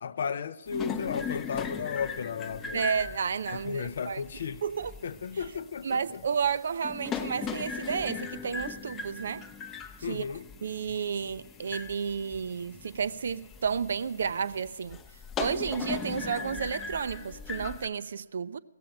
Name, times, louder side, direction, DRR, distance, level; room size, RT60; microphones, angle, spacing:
voice 1, 0.0-2.9 3.5-4.6 5.0-6.2 10.0-10.5, left 6 dB, 60° left, 0.5 m, -34 dB
sound 1, 0.7-17.9, left 6 dB, 15° left, 0.6 m, -39 dB
voice 2, 2.7-4.2 4.6-4.9 5.8-9.5 10.1-10.2 10.6-15.0 15.4-18.6, right 6 dB, 65° right, 0.5 m, -31 dB
16.5 x 7.6 x 8.9 m
hypercardioid pair, 145°, 0 cm